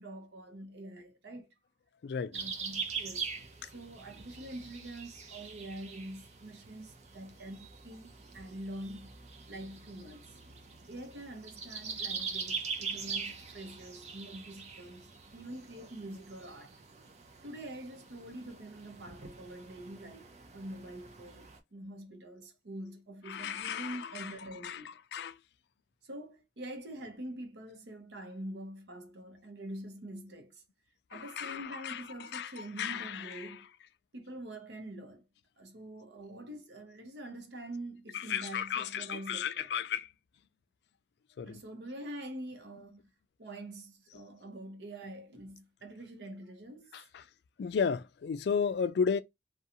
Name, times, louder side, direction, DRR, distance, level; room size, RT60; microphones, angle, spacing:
voice 1, 0.0-1.5 2.3-3.3 3.6-9.1 9.5-10.4 10.9-16.8 17.4-25.0 26.0-30.6 31.1-33.7 34.1-35.2 35.6-39.7 41.4-43.1 43.4-47.0, right 1 dB, 75° right, 0.7 m, -45 dB
voice 2, 2.0-2.4 3.6-3.7 23.3-24.3 24.6-25.4 31.1-33.5 38.1-40.1 41.4-41.6 46.9-47.2 47.6-49.2, left 6 dB, 70° left, 0.3 m, -34 dB
sound 1, 2.3-21.6, right 5 dB, 40° right, 0.5 m, -43 dB
2.5 x 2.2 x 2.7 m
head